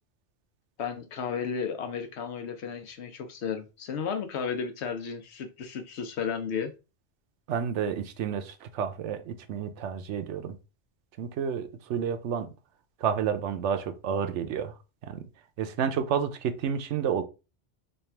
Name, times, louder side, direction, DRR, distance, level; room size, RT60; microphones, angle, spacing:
voice 1, 0.8-6.7, left 6 dB, 75° left, 7 dB, 1.0 m, -33 dB
voice 2, 7.5-10.5 11.2-12.5 13.0-14.7 15.0-15.2 15.6-17.2, right 7 dB, 85° right, 8 dB, 0.9 m, -30 dB
3.3 x 2.4 x 4.3 m, 0.30 s
omnidirectional pair, 1.2 m